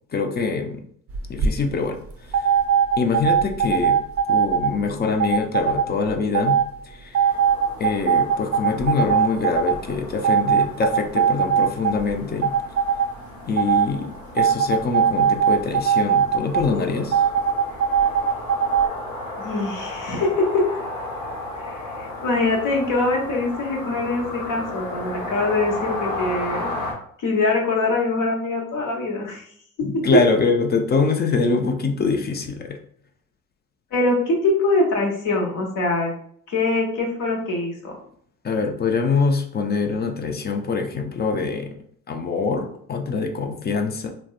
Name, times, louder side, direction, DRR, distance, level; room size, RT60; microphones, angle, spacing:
voice 1, 0.1-0.8 1.3-2.5 3.0-4.0 4.3-7.4 7.8-12.5 13.5-17.2 29.8-32.8 38.4-41.8 42.1-44.1, left 4 dB, 25° left, 5 dB, 0.5 m, -24 dB
sound 1, 1.1-1.5 2.3-4.7 5.2-5.9 6.3-6.7 7.1-9.8 10.2-12.1 12.4-13.1 13.6-13.9 14.4-16.6 17.1-18.9, right 8 dB, 35° right, 0.5 m, -19 dB
sound 2, 7.2-26.9, left 2 dB, 80° left, 1.1 m, -34 dB
voice 2, 19.4-20.7 21.6-26.8 27.2-29.4 29.9-30.2 33.9-36.1 36.5-38.0, left 2 dB, 50° left, 0 dB, 1.0 m, -23 dB
3.4 x 2.1 x 2.3 m, 0.62 s
hypercardioid pair, 50°, 40 cm